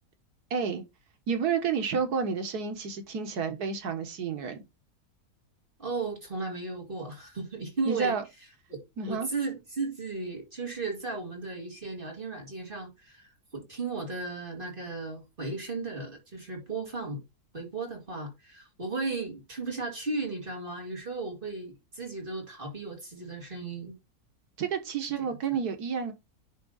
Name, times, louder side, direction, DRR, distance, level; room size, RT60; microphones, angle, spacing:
voice 1, 0.5-0.8 1.3-4.6 7.9-8.2 9.0-9.3 24.6-26.1, right 6 dB, 85° right, 1.7 m, -30 dB
voice 2, 5.8-8.2 8.7-8.8 9.1-17.2 17.5-24.0 25.2-25.4, right 3 dB, 35° right, 2.5 m, -35 dB
10.5 x 3.5 x 3.9 m
omnidirectional pair, 1.6 m